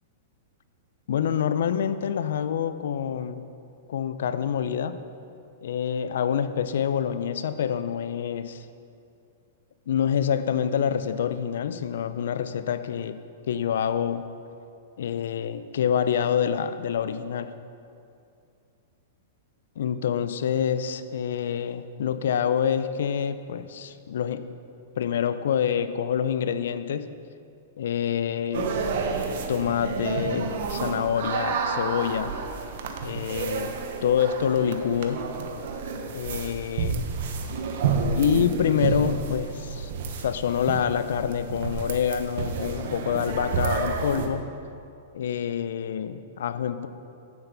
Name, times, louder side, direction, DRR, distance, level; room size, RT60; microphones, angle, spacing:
voice 1, 1.1-3.4 3.9-5.0 5.6-8.6 9.9-13.2 13.5-14.3 15.0-17.5 19.8-24.5 25.0-27.1 27.8-28.8 29.5-32.4 33.0-33.7 34.0-35.3 36.1-37.1 38.1-44.5 45.1-46.9, left 8 dB, 75° left, 12 dB, 0.5 m, -26 dB
sound 1, 28.5-44.3, right 5 dB, 65° right, 1.1 m, -30 dB
10.5 x 8.7 x 4.0 m, 2.5 s
hypercardioid pair, 125°, 0 cm